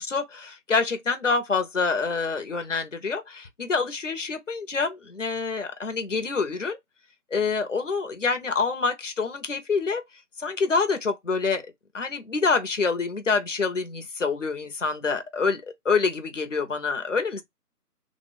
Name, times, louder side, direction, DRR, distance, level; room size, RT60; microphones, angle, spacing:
voice 1, 0.0-6.8 7.3-10.0 10.4-11.7 11.9-17.4, left 4 dB, 50° left, 0.8 m, -26 dB
3.3 x 2.0 x 3.8 m
figure-of-eight pair, 175°, 47 cm